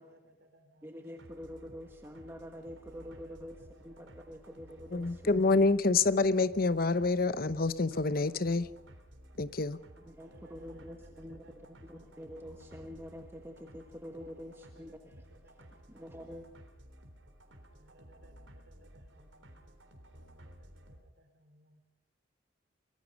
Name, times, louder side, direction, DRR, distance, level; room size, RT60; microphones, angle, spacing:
voice 1, 0.0-1.2 2.9-5.7 10.2-12.1 14.2-16.4 17.8-19.6 20.2-21.8, right 1 dB, 55° right, 6 dB, 3.8 m, -63 dB
voice 2, 0.8-5.6 10.0-15.3 15.7-16.5, equal, 10° right, 4 dB, 1.4 m, -47 dB
sound 1, 1.2-21.0, equal, 75° right, 3.7 m, -55 dB
voice 3, 4.9-8.7 9.4-9.8, left 3 dB, 50° left, 15 dB, 0.8 m, -27 dB
25.0 x 21.5 x 5.3 m, 0.97 s
head